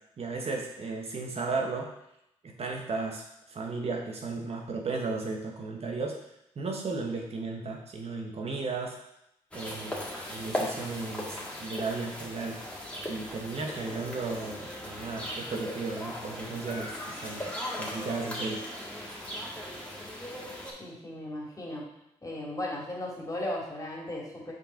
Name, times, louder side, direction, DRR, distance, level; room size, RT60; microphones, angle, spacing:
voice 1, 0.2-1.9 2.4-6.2 6.6-9.0 9.5-12.6 13.1-18.7, right 3 dB, 50° right, 0 dB, 1.2 m, -35 dB
sound 1, 9.5-20.7, left 1 dB, 10° left, 2.0 m, -38 dB
voice 2, 20.8-21.8 22.2-24.5, left 1 dB, 25° left, -3 dB, 2.4 m, -36 dB
5.2 x 4.6 x 4.5 m, 0.82 s
supercardioid pair, 55°, 13 cm